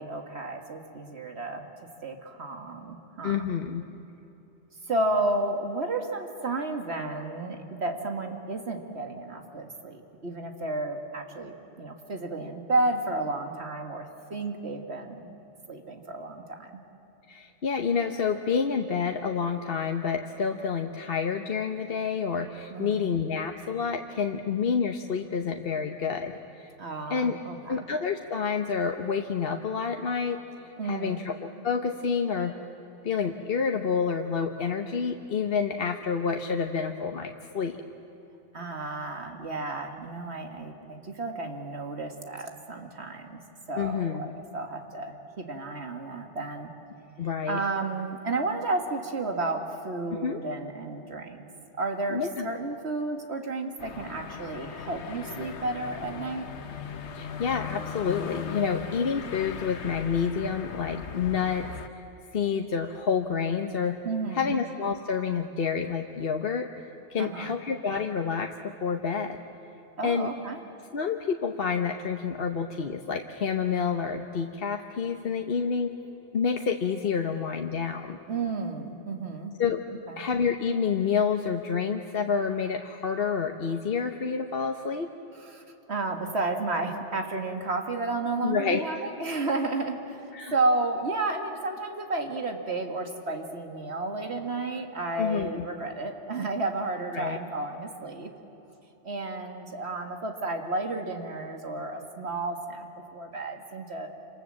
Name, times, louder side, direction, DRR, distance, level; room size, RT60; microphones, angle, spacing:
voice 1, 0.0-3.5 4.9-15.3 15.7-16.8 22.7-23.1 26.8-27.9 30.8-31.2 38.5-43.4 43.7-46.7 47.5-51.4 51.7-56.5 64.0-64.5 67.2-67.5 70.0-70.6 78.3-79.6 80.1-80.2 85.4-85.6 85.9-98.3 99.0-104.1, right 2 dB, 70° right, 4 dB, 2.3 m, -32 dB
voice 2, 3.2-3.8 17.3-26.7 27.1-27.4 27.7-30.4 30.8-32.5 33.0-37.8 43.8-44.4 47.2-47.6 50.1-50.4 52.1-52.5 57.1-61.7 61.9-62.0 62.3-64.0 64.3-66.7 67.1-69.4 70.0-70.3 70.9-76.0 76.3-78.2 79.6-79.8 80.2-85.1 88.4-88.8 90.3-90.5 95.2-95.6 97.1-97.4, left 6 dB, 60° left, 4 dB, 1.1 m, -28 dB
sound 1, 53.8-61.9, left 7 dB, 80° left, 1.3 m, -38 dB
27.5 x 27.0 x 7.6 m, 3.0 s
omnidirectional pair, 1.2 m